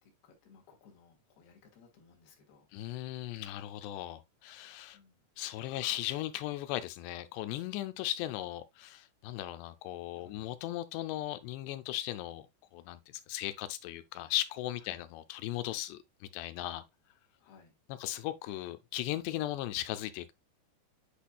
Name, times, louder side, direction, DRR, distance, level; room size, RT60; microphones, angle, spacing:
voice 1, 0.0-2.7 4.9-5.3 10.2-10.4 14.8-15.0 17.4-17.7, left 5 dB, 70° left, 3.4 m, -61 dB
voice 2, 2.7-5.0 5.4-12.5 12.7-16.8 17.9-20.3, left 14 dB, 90° left, 2.8 m, -37 dB
10.0 x 4.3 x 2.2 m
omnidirectional pair, 4.8 m